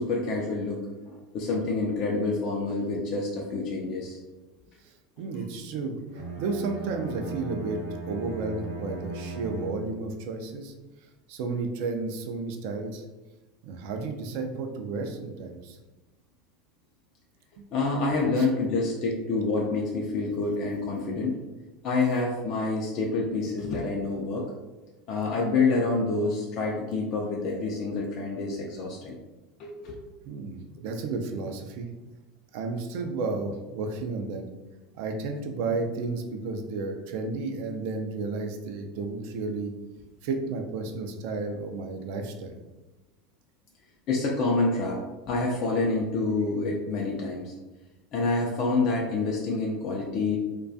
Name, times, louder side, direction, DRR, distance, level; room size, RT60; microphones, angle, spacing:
voice 1, 0.0-4.2 17.7-21.4 21.8-24.5 25.1-29.2 29.6-29.9 44.1-47.5 48.1-50.4, left 3 dB, 50° left, -2 dB, 0.4 m, -27 dB
voice 2, 4.8-6.0 6.4-10.7 11.3-13.0 13.6-15.8 17.6-17.7 18.4-18.5 30.2-31.9 32.5-34.4 34.9-39.7 40.2-42.6, right 3 dB, 65° right, 5 dB, 0.3 m, -32 dB
Bowed string instrument, 6.1-10.2, right 3 dB, 90° right, 0.7 m, -37 dB
2.3 x 2.2 x 2.6 m, 1.1 s
hypercardioid pair, 80°, 0 cm